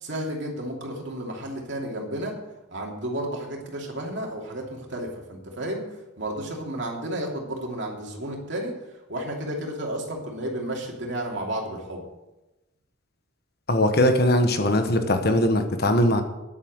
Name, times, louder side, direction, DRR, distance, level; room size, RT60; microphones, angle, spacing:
voice 1, 0.0-2.3 2.7-5.8 6.2-8.7 9.1-12.0, right 1 dB, 55° right, -1 dB, 2.8 m, -32 dB
voice 2, 13.7-16.2, left 1 dB, 50° left, 6 dB, 1.3 m, -20 dB
9.8 x 8.4 x 8.0 m, 1.0 s
head